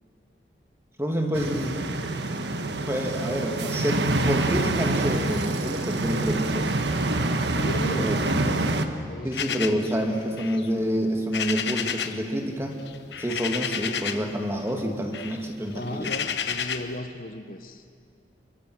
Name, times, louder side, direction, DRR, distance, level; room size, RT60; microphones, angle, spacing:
voice 1, 1.0-1.8 2.8-6.7 8.0-8.2 9.2-12.7 13.2-16.1, equal, 15° right, 3 dB, 2.2 m, -28 dB
sound 1, 1.3-8.9, right 2 dB, 80° right, 1.5 m, -26 dB
voice 2, 7.6-9.9 15.7-17.8, left 1 dB, 50° left, 8 dB, 1.1 m, -36 dB
sound 2, 9.3-12.3 12.5-14.4 14.7-17.0, left 7 dB, 80° left, 1.2 m, -32 dB
29.0 x 24.0 x 6.2 m, 2.2 s
head